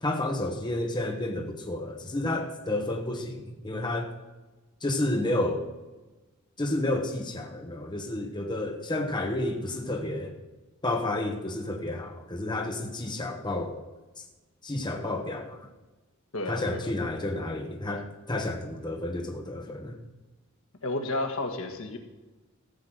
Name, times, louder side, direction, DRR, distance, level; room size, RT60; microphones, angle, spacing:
voice 1, 0.0-4.1 4.8-5.6 6.6-10.3 10.8-13.8 14.6-15.6 16.5-19.9, left 1 dB, 20° left, 2 dB, 1.0 m, -31 dB
voice 2, 16.3-16.9 20.8-22.0, left 2 dB, 70° left, 4 dB, 1.6 m, -31 dB
15.0 x 5.8 x 7.9 m, 1.2 s
head